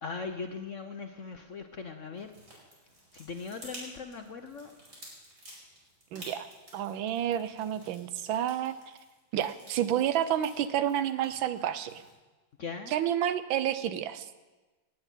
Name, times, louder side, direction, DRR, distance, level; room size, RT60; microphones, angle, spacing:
voice 1, 0.0-2.6 3.1-4.7 12.6-12.9, left 4 dB, 55° left, 6 dB, 0.9 m, -40 dB
sound 1, 2.1-12.1, right 1 dB, 55° right, 5.8 m, -51 dB
voice 2, 6.1-6.5 6.7-8.8 9.3-11.9 12.9-14.3, right 10 dB, 80° right, 13 dB, 1.5 m, -29 dB
17.5 x 6.9 x 9.0 m, 1.2 s
omnidirectional pair, 2.1 m